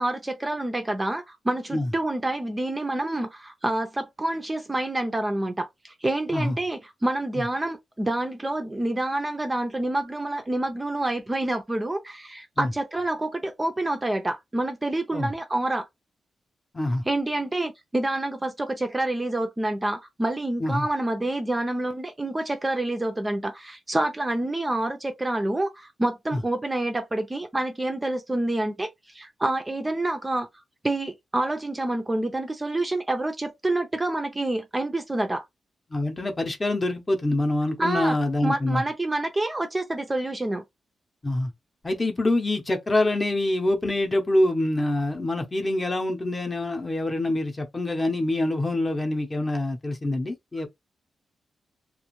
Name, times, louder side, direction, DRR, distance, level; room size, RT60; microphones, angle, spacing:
voice 1, 0.0-15.9 17.1-30.5 30.8-35.4 37.8-38.2 38.4-40.6, right 1 dB, 15° right, 0.4 m, -27 dB
voice 2, 16.7-17.0 20.6-20.9 26.3-26.4 35.9-38.8 41.2-41.5 41.8-50.7, left 1 dB, 25° left, 0.7 m, -25 dB
2.4 x 2.3 x 3.0 m
wide cardioid pair, 125°, 0 cm